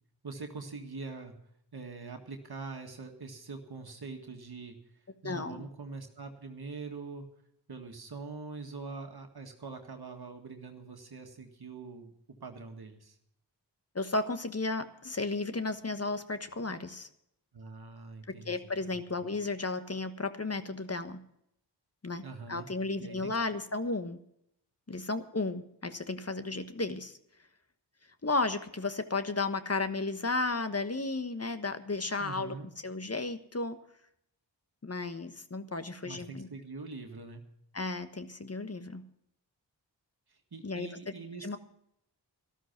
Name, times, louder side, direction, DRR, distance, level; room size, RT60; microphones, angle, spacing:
voice 1, 0.2-1.4 1.7-7.3 7.7-13.2 17.5-19.3 22.2-22.7 23.0-23.3 32.2-32.7 36.0-37.4 40.3-41.6, right 4 dB, 60° right, 3 dB, 1.9 m, -44 dB
voice 2, 5.2-5.7 13.9-17.1 18.4-21.2 22.0-22.2 22.5-24.2 24.9-27.2 28.2-32.6 32.8-33.8 34.8-36.5 37.7-39.0 40.6-40.9 41.4-41.6, left 3 dB, 35° left, 10 dB, 1.3 m, -33 dB
13.0 x 13.0 x 5.9 m, 0.74 s
cardioid pair, 40°, 43 cm